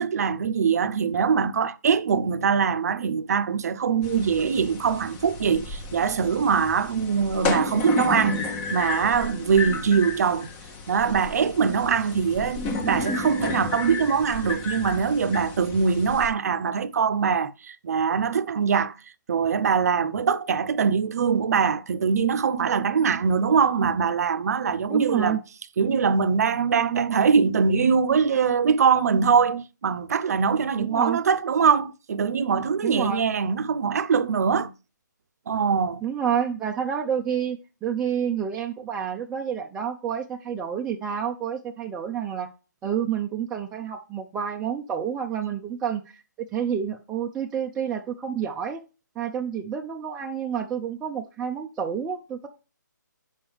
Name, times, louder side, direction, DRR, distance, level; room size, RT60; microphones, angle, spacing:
voice 1, 0.0-8.4 8.7-10.5 10.9-18.9 19.3-25.4 25.8-34.7 35.5-36.0, right 6 dB, 55° right, 0.6 m, -23 dB
sound 1, 4.0-16.3, left 3 dB, 15° left, 0.8 m, -32 dB
voice 2, 24.9-25.4 30.8-31.2 32.8-33.2 36.0-42.5 42.8-48.8 49.2-52.5, right 8 dB, 10° right, 0.4 m, -29 dB
6.9 x 5.5 x 3.4 m
hypercardioid pair, 150°, 10 cm